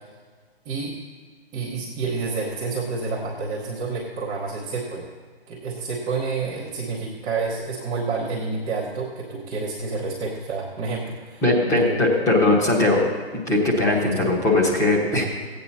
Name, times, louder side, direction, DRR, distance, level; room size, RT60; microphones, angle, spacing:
voice 1, 0.6-1.0 1.5-5.1 5.5-11.4 11.8-12.0 14.1-14.3, right 4 dB, 10° right, -8 dB, 0.8 m, -29 dB
voice 2, 11.4-13.0 13.5-15.2, left 2 dB, 10° left, -4 dB, 1.2 m, -19 dB
15.0 x 8.8 x 4.1 m, 1.5 s
figure-of-eight pair, 150°, 33 cm